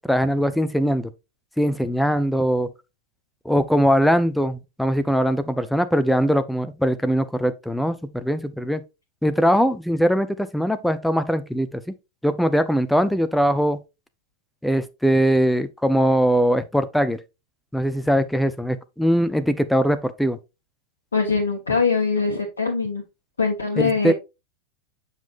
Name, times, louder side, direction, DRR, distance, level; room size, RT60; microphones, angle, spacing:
voice 1, 0.1-1.1 1.6-2.7 3.4-8.8 9.2-11.9 12.2-13.8 14.6-17.2 17.7-20.4 23.8-24.1, equal, ahead, 0.6 m, -21 dB
voice 2, 21.1-23.0 23.4-24.1, left 4 dB, 70° left, 1.2 m, -22 dB
7.3 x 5.5 x 2.6 m
figure-of-eight pair, 90°, 0 cm